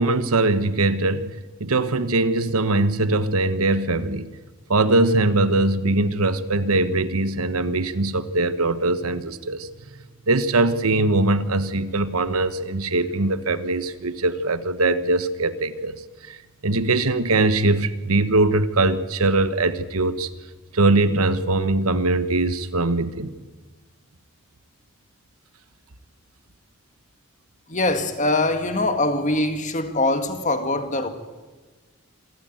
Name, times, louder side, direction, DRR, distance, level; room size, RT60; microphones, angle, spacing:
voice 1, 0.0-4.3 4.7-9.7 10.3-16.4 16.6-20.3 20.7-23.3, right 2 dB, 85° right, 1.2 m, -21 dB
voice 2, 27.7-31.1, left 2 dB, 35° left, 1.8 m, -23 dB
27.0 x 13.5 x 9.2 m
head